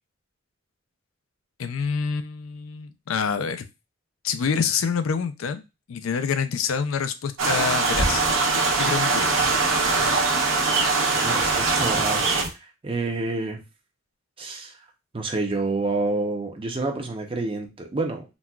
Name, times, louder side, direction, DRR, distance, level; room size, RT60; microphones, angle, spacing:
voice 1, 1.6-3.6 4.2-5.6 5.9-8.2 8.8-9.5, left 6 dB, 75° left, 10 dB, 0.4 m, -27 dB
sound 1, 7.4-12.5, right 3 dB, 75° right, 0.8 m, -22 dB
voice 2, 11.2-12.4 12.8-13.6 14.4-14.7 15.1-18.2, right 3 dB, 25° right, 3 dB, 0.6 m, -28 dB
4.0 x 2.2 x 2.2 m, 0.25 s
head